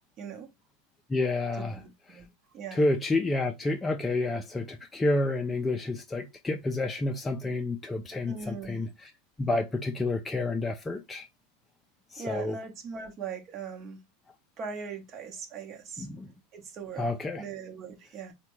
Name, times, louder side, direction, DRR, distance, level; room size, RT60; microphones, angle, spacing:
voice 1, 0.2-0.5 1.6-2.3 2.5-2.8 8.3-8.8 12.2-14.0 14.6-16.1 16.5-17.1 17.4-18.3, right 5 dB, 40° right, 0.9 m, -40 dB
voice 2, 1.1-1.8 2.7-9.1 9.4-11.3 12.1-12.6 16.0-16.3 17.0-17.4, left 2 dB, 15° left, 0.4 m, -29 dB
3.4 x 2.2 x 3.0 m
hypercardioid pair, 100°, 0 cm